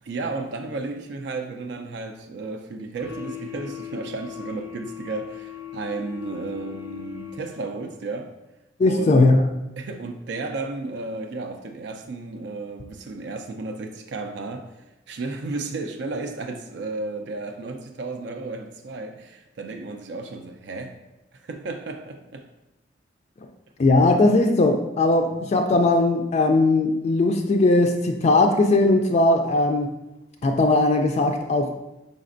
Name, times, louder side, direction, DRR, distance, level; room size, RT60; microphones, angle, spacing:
voice 1, 0.0-8.3 8.8-9.3 9.8-20.9 21.3-22.5, right 3 dB, 65° right, 0.4 m, -33 dB
sound 1, 3.0-7.8, left 11 dB, 15° right, 0.6 m, -39 dB
voice 2, 8.8-9.4 23.8-29.9 30.4-31.7, left 2 dB, 35° left, 0.3 m, -19 dB
5.0 x 4.1 x 2.5 m
head